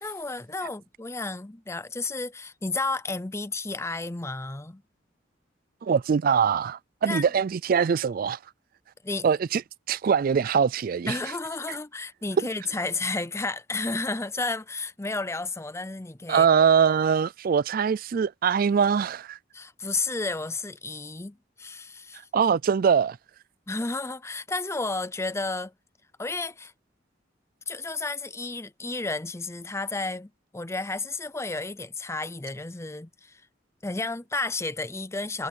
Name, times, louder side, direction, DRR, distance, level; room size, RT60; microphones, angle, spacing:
voice 1, 0.0-4.8 7.1-7.3 9.0-9.3 11.1-16.5 19.5-22.2 23.7-25.7 26.2-26.7 27.7-33.4 33.8-35.5, left 3 dB, 15° left, 0.6 m, -32 dB
voice 2, 5.8-8.4 9.2-9.6 9.9-11.2 11.7-11.8 12.4-12.5 16.3-19.4 22.3-23.2, right 7 dB, 50° right, 0.3 m, -23 dB
head